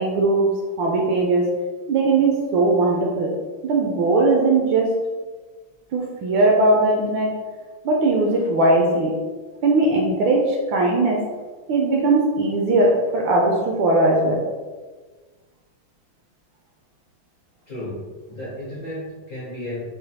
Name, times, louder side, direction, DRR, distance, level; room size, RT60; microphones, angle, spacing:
voice 1, 0.0-1.6 1.9-5.0 5.9-7.4 7.8-9.1 9.6-11.3 11.7-14.4, right 2 dB, 75° right, -1 dB, 1.1 m, -19 dB
voice 2, 17.7-19.9, left 1 dB, 55° left, -8 dB, 0.9 m, -33 dB
4.9 x 2.2 x 2.8 m, 1.4 s
omnidirectional pair, 2.4 m